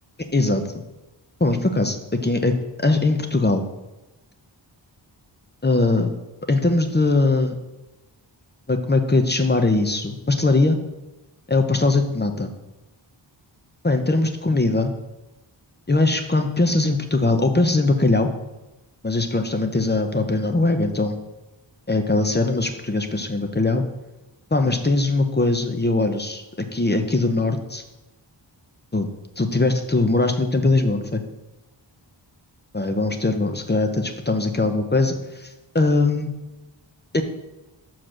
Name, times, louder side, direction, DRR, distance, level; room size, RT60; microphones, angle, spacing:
voice 1, 0.3-0.6 1.4-2.0 2.2-3.6 5.6-6.1 6.5-7.6 8.7-10.8 11.5-12.5 13.8-14.9 15.9-18.3 19.0-21.2 21.9-23.8 24.5-27.8 28.9-29.1 29.4-31.2 32.7-35.5 35.7-36.3 37.1-37.2, left 2 dB, 20° left, 6 dB, 0.7 m, -21 dB
5.9 x 4.9 x 6.2 m, 1.0 s
wide cardioid pair, 75°, 46 cm